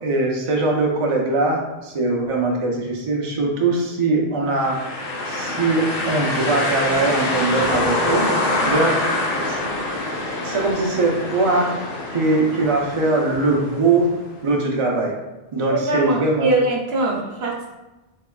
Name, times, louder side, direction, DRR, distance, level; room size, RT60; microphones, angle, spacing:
voice 1, 0.0-4.8 5.3-8.2 8.6-8.9 9.4-9.6 10.4-11.7 12.1-14.1 14.4-15.2 15.5-16.5, right 3 dB, 40° right, -1 dB, 0.5 m, -21 dB
sound 1, 4.6-14.4, left 2 dB, 65° left, 0.8 m, -25 dB
voice 2, 15.7-17.7, right 2 dB, 75° right, -2 dB, 0.9 m, -22 dB
3.4 x 2.8 x 2.2 m, 1.1 s
omnidirectional pair, 1.1 m